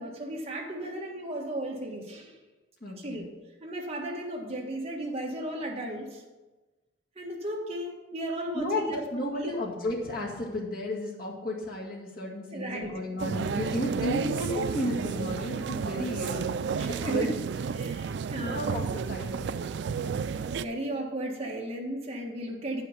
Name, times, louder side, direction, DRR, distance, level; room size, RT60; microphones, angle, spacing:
voice 1, 0.0-2.4 3.0-6.2 7.1-9.6 12.5-12.9 16.8-17.3 17.7-18.7 20.2-22.8, right 1 dB, 35° right, -1 dB, 1.6 m, -35 dB
voice 2, 2.8-3.3 8.5-16.4 16.7-17.3 18.4-18.8 19.1-19.8, left 1 dB, 55° left, -3 dB, 2.1 m, -33 dB
sound 1, 13.2-20.6, right 6 dB, 70° right, 0.3 m, -31 dB
9.3 x 5.8 x 5.9 m, 1.1 s
head